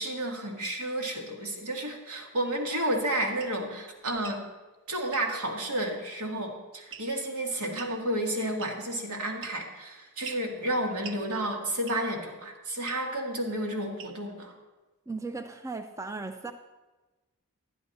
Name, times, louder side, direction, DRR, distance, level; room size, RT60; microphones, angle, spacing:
voice 1, 0.0-4.4 4.9-14.5, right 1 dB, 85° right, 1 dB, 1.9 m, -31 dB
sound 1, 3.4-3.6 4.1-4.4 5.1-5.3 6.9-7.2 7.8-8.0 8.6-8.9 9.4-9.8 10.2-10.5 11.0-11.2 11.9-12.2 12.8-13.0 14.0-14.3, right 6 dB, 55° right, 0.7 m, -44 dB
voice 2, 15.1-16.5, right 3 dB, 15° right, 7 dB, 0.3 m, -36 dB
11.0 x 10.5 x 4.1 m, 1.2 s
head